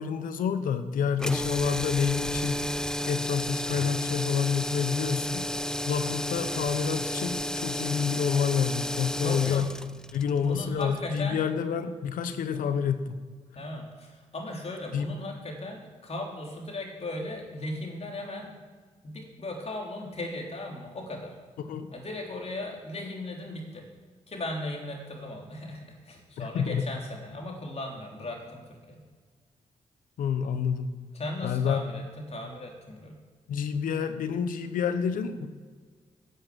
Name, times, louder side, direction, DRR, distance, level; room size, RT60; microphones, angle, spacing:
voice 1, 0.0-2.7 3.0-5.5 5.9-9.7 10.1-13.2 14.9-15.1 21.7-21.9 26.4-26.9 30.2-31.0 31.4-31.8 33.5-35.5, left 7 dB, 90° left, 10 dB, 0.9 m, -28 dB
sound 1, 1.2-11.3, left 1 dB, 5° left, 0.5 m, -32 dB
voice 2, 9.2-9.7 10.4-11.4 12.5-12.7 13.5-18.5 19.0-21.4 21.9-23.9 24.3-29.1 31.1-33.2, left 1 dB, 50° left, 0 dB, 3.3 m, -37 dB
11.0 x 7.5 x 7.6 m, 1.5 s
cardioid pair, 55°, 14 cm